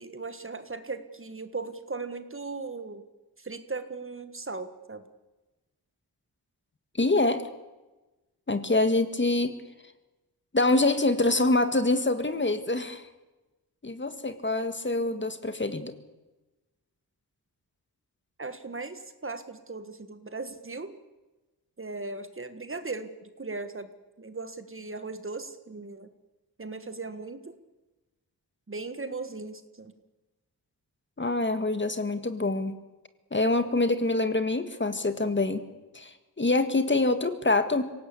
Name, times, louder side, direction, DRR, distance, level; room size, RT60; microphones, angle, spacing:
voice 1, 0.0-3.0 3.4-5.0 18.4-20.9 21.8-23.9 24.2-26.1 26.6-27.5 28.7-29.9, right 3 dB, 30° right, 10 dB, 1.6 m, -38 dB
voice 2, 7.0-7.5 8.5-9.6 10.5-13.0 13.8-15.9 31.2-32.8 33.3-35.6 35.9-37.9, left 2 dB, 30° left, 10 dB, 1.8 m, -25 dB
25.5 x 17.5 x 8.4 m, 1.1 s
wide cardioid pair, 95°, 40 cm